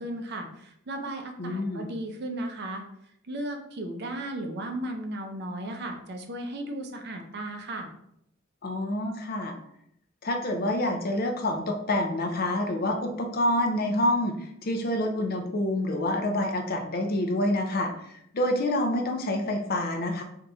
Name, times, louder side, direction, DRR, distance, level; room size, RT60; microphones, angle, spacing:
voice 1, 0.0-2.8 3.3-7.9, right 1 dB, 50° right, 4 dB, 0.6 m, -35 dB
voice 2, 1.4-1.9 8.6-9.5 10.2-20.2, left 1 dB, 45° left, 4 dB, 0.6 m, -27 dB
3.5 x 2.8 x 3.9 m, 0.73 s
head